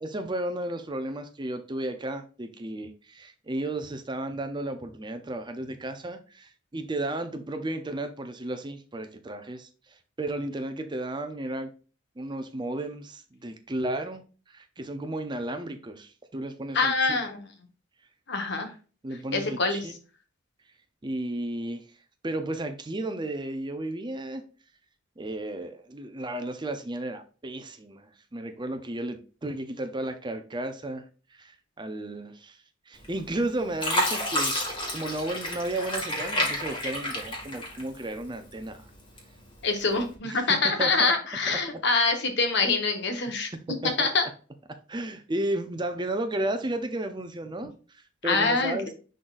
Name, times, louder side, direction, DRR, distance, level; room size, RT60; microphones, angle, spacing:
voice 1, 0.0-9.7 10.2-11.7 12.2-17.2 19.0-20.0 21.0-21.8 22.2-24.4 25.2-28.1 28.3-31.0 31.3-32.6 32.9-38.8 40.3-40.9 41.5-41.8 43.8-44.1 44.9-48.9, right 1 dB, 25° right, 0.6 m, -33 dB
voice 2, 16.7-17.4 18.3-18.7 19.3-19.8 39.6-43.5 43.8-44.2 48.2-48.9, left 3 dB, 60° left, 1.4 m, -25 dB
Fill (with liquid), 33.0-33.4 33.8-38.2 38.6-39.4 40.0-40.1, left 1 dB, 25° left, 2.1 m, -30 dB
10.0 x 3.9 x 2.6 m
head